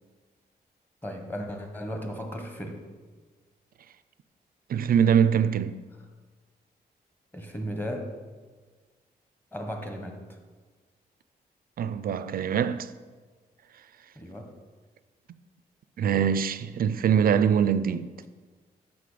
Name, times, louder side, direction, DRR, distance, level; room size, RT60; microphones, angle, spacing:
voice 1, 1.0-2.8 7.3-8.1 9.5-10.4 14.1-14.5, equal, 10° left, 1.2 m, -35 dB
voice 2, 4.7-5.8 11.8-12.9 16.0-18.1, right 8 dB, 65° right, 0.4 m, -23 dB
6.9 x 6.1 x 5.0 m
cardioid pair, 85°, 16 cm